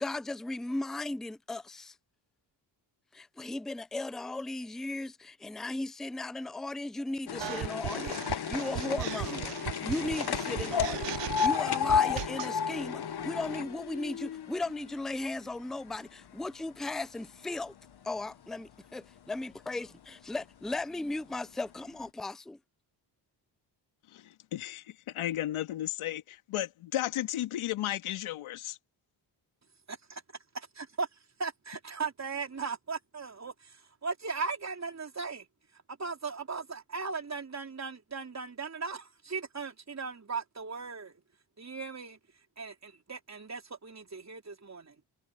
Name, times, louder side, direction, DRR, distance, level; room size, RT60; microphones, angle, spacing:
voice 1, 0.0-1.9 3.1-17.7 18.0-18.7 18.9-19.0 19.3-22.6, left 2 dB, ahead, 0.5 m, -36 dB
sound 1, 7.3-15.5 15.9-16.8 17.5-17.6 17.8-17.9 18.2-18.3 19.2-19.3 19.9-20.0 20.7-20.8 21.2-21.3, left 8 dB, 55° left, 1.4 m, -32 dB
sound 2, 7.4-12.5, right 18 dB, 65° right, 0.5 m, -37 dB
voice 2, 24.1-28.8, left 13 dB, 85° left, 2.2 m, -34 dB
voice 3, 29.9-30.2 30.5-31.1 31.4-35.5 36.0-41.1 41.6-42.2 42.6-44.9, right 4 dB, 35° right, 4.1 m, -38 dB
cardioid pair, 65°, 48 cm